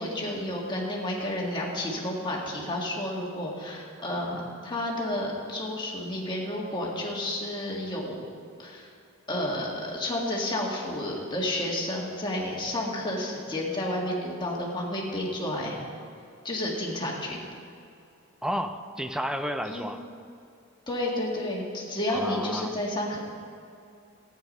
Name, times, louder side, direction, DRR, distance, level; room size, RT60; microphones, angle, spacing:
voice 1, 0.0-8.2 8.6-8.9 9.3-15.8 16.4-17.5 19.7-19.9 20.9-23.2, left 1 dB, 20° left, -3 dB, 1.9 m, -31 dB
voice 2, 18.4-20.0 22.1-22.8, equal, 5° right, 7 dB, 0.4 m, -31 dB
13.5 x 9.3 x 5.4 m, 2.6 s
head